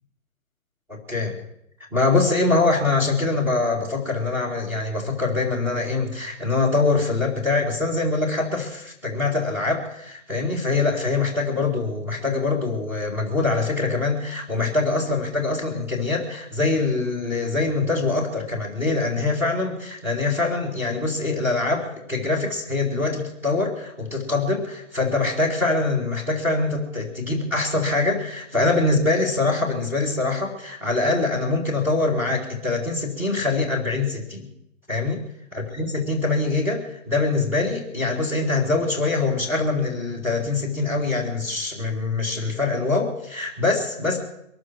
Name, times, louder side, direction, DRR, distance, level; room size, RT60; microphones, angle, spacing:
voice 1, 0.9-1.3 1.9-34.5 34.9-35.2 35.5-44.2, left 3 dB, 5° right, -6 dB, 2.5 m, -24 dB
22.5 x 13.5 x 4.6 m, 0.77 s
hypercardioid pair, 155°, 41 cm